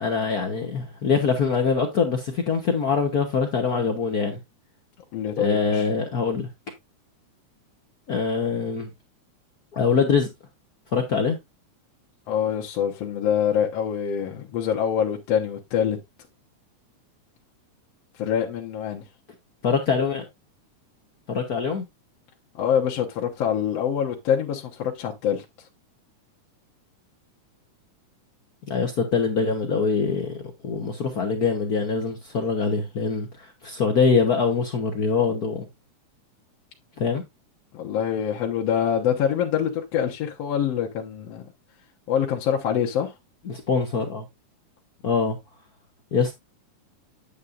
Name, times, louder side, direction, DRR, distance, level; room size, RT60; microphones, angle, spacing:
voice 1, 0.0-4.4 5.4-6.5 8.1-8.9 9.7-10.3 10.9-11.4 19.6-20.2 21.3-21.8 28.7-35.7 37.0-37.2 43.5-44.2 45.0-45.4 46.1-46.3, left 5 dB, 75° left, 0.8 m, -23 dB
voice 2, 5.1-5.9 12.3-16.0 18.2-19.1 22.6-25.5 37.7-41.5 42.1-43.1, left 8 dB, 60° left, 2.0 m, -25 dB
8.8 x 8.4 x 2.5 m
omnidirectional pair, 3.5 m